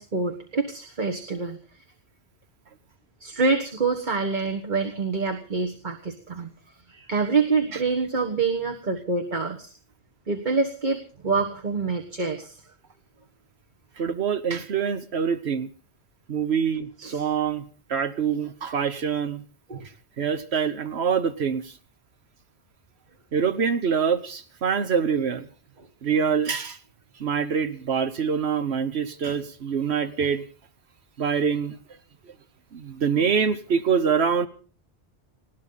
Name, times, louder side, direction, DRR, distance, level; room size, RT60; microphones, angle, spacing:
voice 1, 0.0-1.6 3.2-6.5 6.9-9.7 10.3-12.6 17.0-17.2 19.7-19.9, right 4 dB, 45° right, 3 dB, 1.6 m, -26 dB
voice 2, 14.0-15.7 16.3-17.6 17.9-19.4 20.2-21.7 23.3-25.5 26.0-26.8 27.2-30.5 31.2-31.8 32.7-34.5, right 6 dB, 80° right, 9 dB, 1.3 m, -25 dB
20.0 x 17.0 x 4.0 m, 0.40 s
omnidirectional pair, 1.1 m